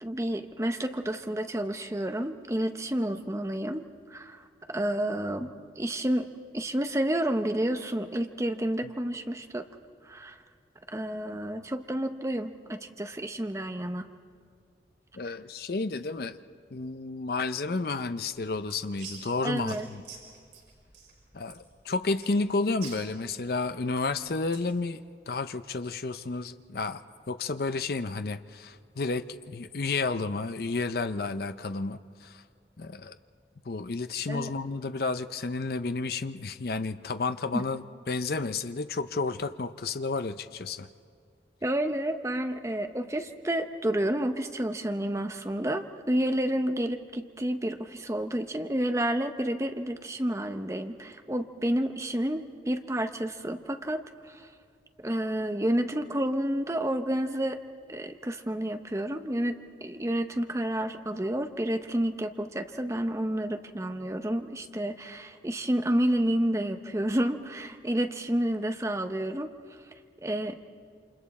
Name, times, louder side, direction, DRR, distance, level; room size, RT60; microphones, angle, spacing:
voice 1, 0.0-6.3 6.5-9.7 10.0-10.4 10.9-14.1 19.4-19.9 34.3-34.5 37.5-37.6 41.6-54.5 55.0-57.6 57.9-69.5 70.2-70.6, right 1 dB, 15° right, 7 dB, 0.7 m, -30 dB
voice 2, 15.1-16.4 16.7-20.0 21.3-25.0 25.3-27.0 27.3-32.4 32.8-33.2 33.7-40.9, left 3 dB, 55° left, 11 dB, 0.6 m, -31 dB
sound 1, 18.2-24.8, right 5 dB, 75° right, 5.6 m, -49 dB
28.5 x 26.0 x 4.2 m, 2.2 s
head